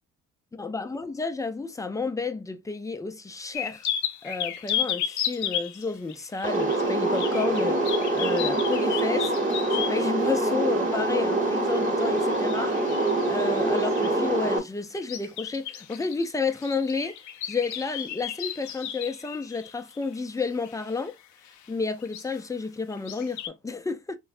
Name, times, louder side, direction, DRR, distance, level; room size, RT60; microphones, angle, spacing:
voice 1, 0.5-3.9 4.2-7.8 8.1-9.3 9.7-12.8 13.3-17.2 17.4-21.2 21.7-24.2, left 4 dB, 10° left, 0.3 m, -31 dB
sound 1, 3.5-10.1 11.7-14.3 15.0-21.1 21.4-21.7 22.0-22.4 22.9-23.5, left 10 dB, 75° left, 0.5 m, -34 dB
sound 2, 6.4-14.6, right 2 dB, 25° right, 1.0 m, -25 dB
3.8 x 2.1 x 2.5 m
cardioid pair, 90°, 30 cm